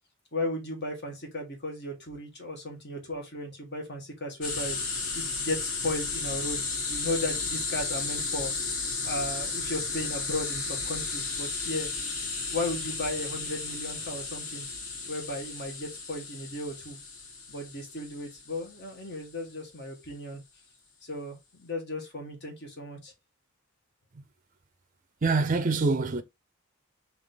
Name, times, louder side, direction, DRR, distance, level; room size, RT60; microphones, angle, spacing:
voice 1, 0.3-4.8 5.1-8.5 9.0-11.9 12.5-14.7 15.1-17.0 17.5-20.4 21.0-23.1, left 2 dB, 50° left, 1.5 m, -35 dB
sound 1, 4.4-18.9, left 4 dB, 65° left, 1.4 m, -34 dB
voice 2, 25.2-26.2, right 3 dB, 35° right, 0.5 m, -25 dB
4.9 x 2.9 x 3.7 m
head